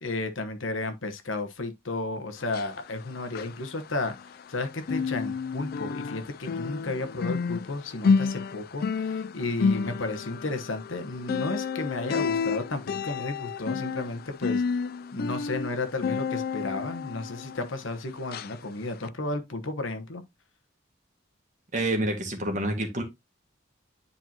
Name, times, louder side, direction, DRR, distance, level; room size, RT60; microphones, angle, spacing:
voice 1, 0.0-14.6 15.1-20.2, left 2 dB, 80° left, 1.2 m, -33 dB
sound 1, 2.4-4.6 4.8-17.9 18.3-18.5 19.0-19.1, left 5 dB, 50° left, 0.3 m, -30 dB
voice 2, 21.7-23.0, right 1 dB, 40° right, 1.9 m, -28 dB
9.9 x 4.5 x 2.9 m
head